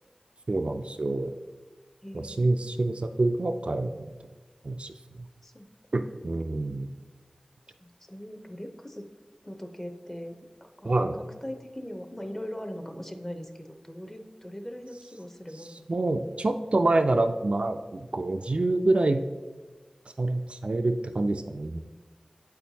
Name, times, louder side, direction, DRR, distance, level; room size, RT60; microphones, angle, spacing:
voice 1, 0.5-1.3 2.1-4.1 4.6-4.9 5.9-6.9 10.8-11.2 15.9-19.2 20.2-21.8, right 2 dB, 60° right, 7 dB, 0.3 m, -26 dB
voice 2, 2.0-2.5 5.4-5.7 7.8-9.0 9.4-15.9, equal, 20° left, 5 dB, 0.7 m, -40 dB
8.0 x 4.4 x 2.7 m, 1.3 s
wide cardioid pair, 40°, 2 cm